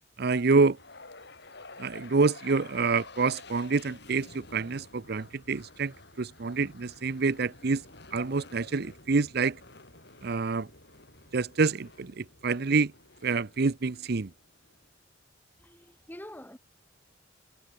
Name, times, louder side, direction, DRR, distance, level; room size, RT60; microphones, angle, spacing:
voice 1, 0.2-0.8 1.8-7.8 8.1-9.6 10.2-10.7 11.3-12.9 13.2-14.3, right 4 dB, 55° right, 0.6 m, -27 dB
sound 1, 0.7-14.9, left 3 dB, 60° left, 6.8 m, -51 dB
voice 2, 15.6-16.6, left 1 dB, 10° left, 6.3 m, -46 dB
head